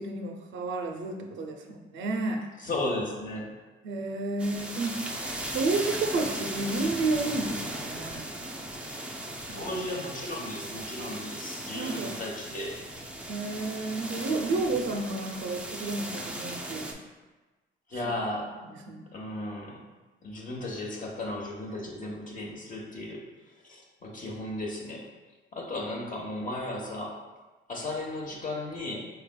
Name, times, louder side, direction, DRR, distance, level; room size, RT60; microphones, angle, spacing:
voice 1, 0.0-2.4 3.8-5.1 5.5-8.3 9.5-9.6 11.7-12.1 13.3-17.0 18.0-18.1 18.7-19.1, right 3 dB, 75° right, 3 dB, 0.5 m, -31 dB
voice 2, 2.6-3.5 9.4-12.8 17.9-18.5 19.1-19.8 20.2-23.3 23.7-25.0 25.5-27.1 27.7-29.0, left 1 dB, 40° left, -1 dB, 0.9 m, -35 dB
sound 1, 4.4-16.9, right 1 dB, 5° right, 0.4 m, -37 dB
4.4 x 3.3 x 2.2 m, 1.2 s
cardioid pair, 90°, 20 cm